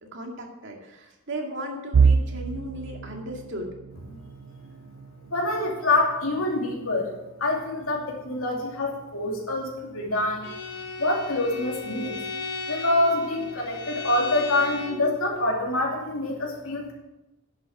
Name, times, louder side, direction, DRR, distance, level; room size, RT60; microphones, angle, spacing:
voice 1, 0.0-3.7, right 1 dB, 60° right, 1 dB, 2.3 m, -36 dB
sound 1, 1.9-13.8 14.2-14.5 14.8-15.0 15.9-16.3, right 5 dB, 80° right, 0.4 m, -31 dB
voice 2, 5.3-7.1 7.4-10.5 11.0-12.2 12.7-16.9, left 2 dB, 75° left, 0 dB, 2.8 m, -26 dB
Bowed string instrument, 10.4-15.1, left 3 dB, 55° left, 2.0 m, -36 dB
10.5 x 7.7 x 7.2 m, 0.97 s
head